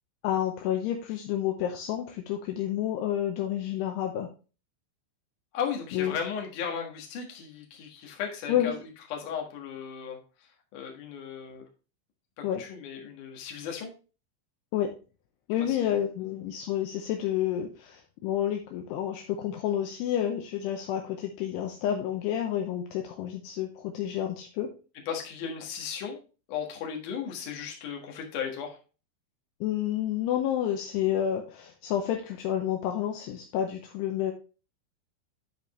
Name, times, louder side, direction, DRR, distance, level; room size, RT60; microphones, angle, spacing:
voice 1, 0.2-4.3 5.9-6.1 8.5-8.8 12.4-12.6 14.7-14.9 15.5-24.7 29.6-34.3, left 10 dB, 85° left, 3 dB, 2.4 m, -29 dB
voice 2, 5.5-8.8 9.1-10.2 10.7-11.6 12.4-13.9 15.7-16.0 25.1-26.2 26.5-28.8, left 7 dB, 60° left, 1 dB, 2.2 m, -36 dB
9.9 x 5.1 x 3.1 m, 0.33 s
omnidirectional pair, 5.7 m